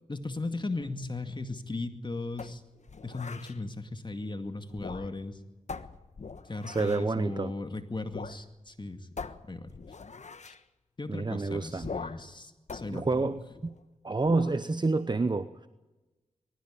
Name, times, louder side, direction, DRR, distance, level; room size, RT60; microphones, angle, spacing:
voice 1, 0.1-2.6 3.0-5.4 6.5-9.1 9.5-9.7 10.4-10.6 11.0-13.3, left 2 dB, 35° left, 7 dB, 2.1 m, -37 dB
sound 1, 2.4-3.6 4.7-5.3 5.7-7.1 8.1-8.4 8.7-8.8 9.2-10.6 11.8-12.3 12.7-13.8 14.3-14.6, left 4 dB, 60° left, 1.3 m, -42 dB
voice 2, 6.7-7.5 11.1-11.9 12.9-13.7 14.0-15.7, right 3 dB, 30° right, 12 dB, 0.9 m, -29 dB
23.0 x 15.0 x 8.8 m, 1.1 s
cardioid pair, 50°, 14 cm